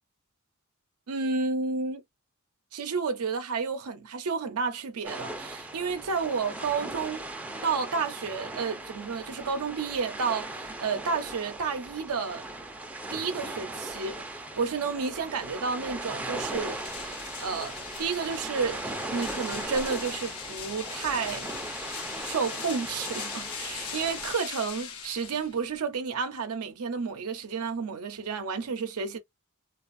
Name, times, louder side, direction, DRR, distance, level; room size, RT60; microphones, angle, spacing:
voice 1, 1.1-2.0 2.7-7.2 7.6-12.5 13.1-16.8 17.4-17.7 18.0-18.9 19.1-21.5 22.2-29.2, right 5 dB, 80° right, 0.5 m, -31 dB
sound 1, 5.0-24.3, right 2 dB, 5° right, 0.4 m, -38 dB
sound 2, 16.1-25.8, left 7 dB, 75° left, 0.7 m, -40 dB
2.4 x 2.4 x 2.5 m
head